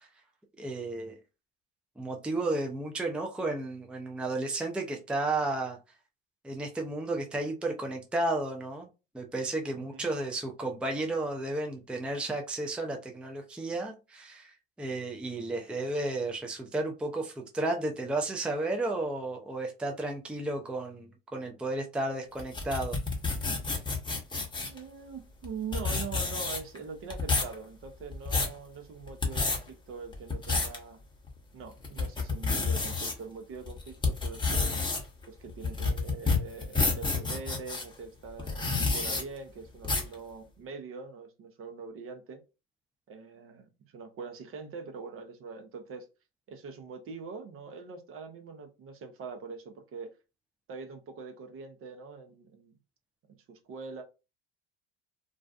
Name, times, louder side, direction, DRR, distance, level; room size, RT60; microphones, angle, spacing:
voice 1, 0.6-1.1 2.0-5.8 6.4-8.9 9.1-14.5 14.8-23.0, right 2 dB, 5° right, 0.5 m, -33 dB
voice 2, 9.8-10.1 24.7-31.0 31.5-34.8 35.3-42.4 43.1-46.1 46.5-50.1 50.7-52.7 53.3-54.0, right 5 dB, 45° right, 0.8 m, -43 dB
sound 1, 22.4-24.8 25.4-25.5 25.7-26.8 27.1-27.5 28.0-28.6 29.1-29.6 30.1-30.8 31.3-31.4 31.8-33.1 33.7-37.8 38.4-39.2 39.8-40.1, left 4 dB, 15° left, 0.9 m, -29 dB
2.5 x 2.1 x 2.4 m
hypercardioid pair, 70°, 31 cm